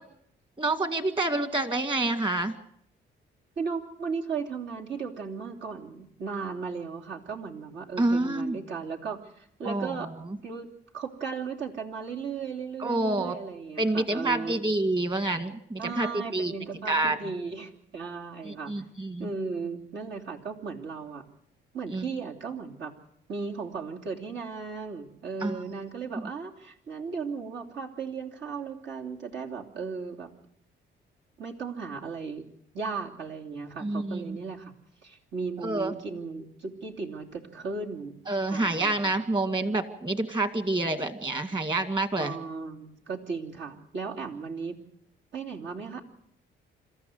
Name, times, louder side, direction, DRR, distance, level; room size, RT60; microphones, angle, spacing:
voice 1, 0.6-2.5 8.0-8.6 9.6-10.2 12.8-13.4 13.8-16.5 16.9-17.2 18.4-19.3 21.9-22.0 25.4-25.6 33.8-34.4 35.6-35.9 38.3-42.3, right 2 dB, 25° right, 9 dB, 2.2 m, -28 dB
voice 2, 3.6-10.1 10.4-10.7 10.9-14.6 15.8-18.7 19.2-21.2 21.7-22.9 23.3-30.3 31.4-32.4 32.7-34.7 35.0-38.1 38.5-39.1 42.2-44.8 45.3-46.0, right 5 dB, 65° right, 0 dB, 3.1 m, -36 dB
26.5 x 14.0 x 8.0 m, 0.71 s
cardioid pair, 90°, 20 cm